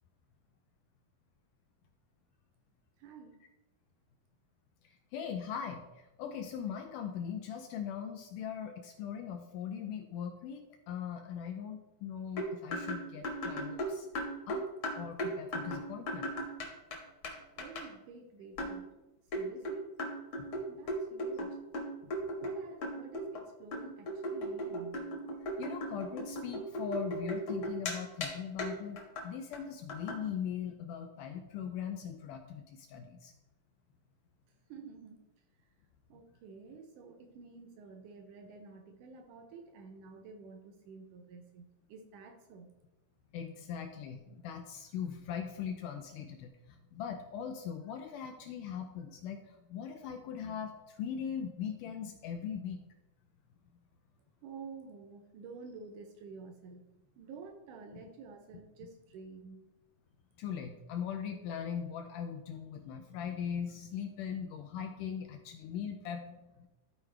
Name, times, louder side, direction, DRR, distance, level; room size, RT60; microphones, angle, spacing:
voice 1, 3.0-3.4 17.6-18.9 19.3-19.9 20.7-21.6 22.4-25.1 34.7-35.2 36.1-42.7 54.4-56.8 57.2-59.6, right 5 dB, 75° right, 5 dB, 1.9 m, -50 dB
voice 2, 5.1-14.1 14.5-14.7 15.0-16.3 20.4-20.5 25.6-29.0 29.2-33.3 43.3-52.8 57.9-58.0 60.4-66.4, left 8 dB, 85° left, 5 dB, 1.9 m, -40 dB
sound 1, 12.4-17.0 17.2-17.3 17.6-17.8 18.6-18.8 19.3-22.6 22.8-23.4 23.7-27.9 28.2-28.3 28.6-28.7 29.0-29.2 29.5-29.6 29.9-30.2, equal, 55° left, 1.5 m, -37 dB
13.0 x 4.7 x 3.3 m, 0.98 s
omnidirectional pair, 4.1 m